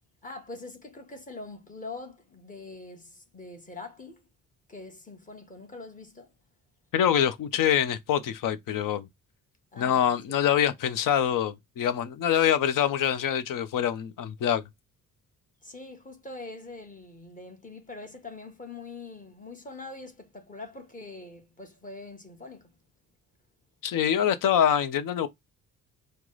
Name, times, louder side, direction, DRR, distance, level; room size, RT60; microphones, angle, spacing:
voice 1, 0.2-4.2 4.7-6.3 9.7-10.4 15.6-22.7, left 3 dB, 25° left, 1.3 m, -43 dB
voice 2, 6.9-9.1 9.8-14.6 23.8-25.3, left 9 dB, 70° left, 0.8 m, -25 dB
4.7 x 2.2 x 3.8 m
cardioid pair, 130°, 33 cm